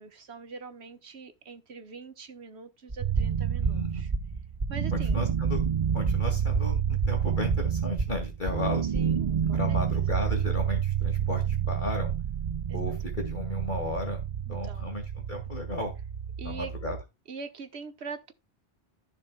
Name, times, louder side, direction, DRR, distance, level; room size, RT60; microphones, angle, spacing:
voice 1, 0.0-4.1 4.7-5.2 8.8-10.0 12.7-12.8 14.5-14.9 16.4-16.7 17.3-18.3, right 4 dB, 70° right, 1.5 m, -43 dB
sound 1, 2.9-9.3, right 2 dB, 30° right, 1.4 m, -33 dB
sound 2, 3.0-17.0, right 8 dB, 50° right, 0.5 m, -29 dB
voice 2, 3.6-4.1 4.9-5.6 5.9-8.8 9.5-12.1 12.7-14.2 14.5-15.9 16.4-17.0, left 2 dB, 45° left, 2.3 m, -34 dB
15.0 x 6.2 x 2.2 m
omnidirectional pair, 1.2 m